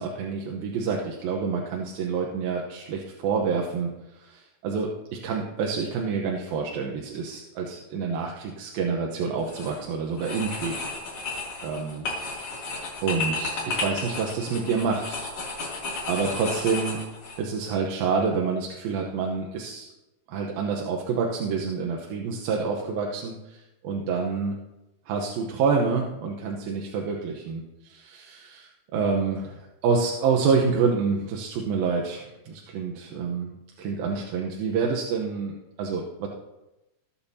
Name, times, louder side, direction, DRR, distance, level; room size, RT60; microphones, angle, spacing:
voice 1, 0.0-10.8 11.6-12.1 13.0-15.7 16.1-17.0 17.4-19.9 20.3-24.5 25.1-33.5 33.8-36.3, right 5 dB, 90° right, 0 dB, 2.9 m, -28 dB
sound 1, 9.4-9.8 10.2-17.4, left 3 dB, 50° left, 4.0 m, -33 dB
19.5 x 8.7 x 2.8 m, 0.97 s
omnidirectional pair, 4.1 m